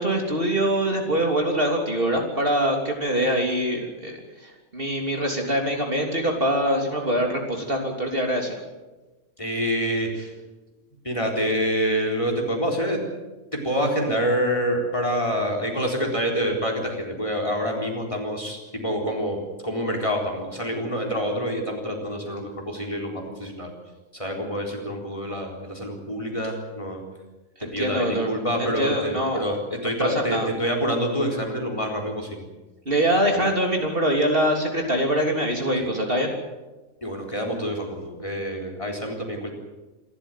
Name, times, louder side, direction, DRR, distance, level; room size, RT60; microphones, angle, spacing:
voice 1, 0.0-8.6 27.6-28.3 28.8-29.4 30.0-30.5 32.9-36.3, right 1 dB, 40° right, 2 dB, 3.5 m, -24 dB
voice 2, 9.4-10.3 11.0-13.0 13.5-23.7 24.1-27.0 27.6-32.4 35.8-35.9 37.0-39.5, equal, 20° left, 2 dB, 4.2 m, -27 dB
27.5 x 13.5 x 9.3 m, 1.1 s
omnidirectional pair, 1.5 m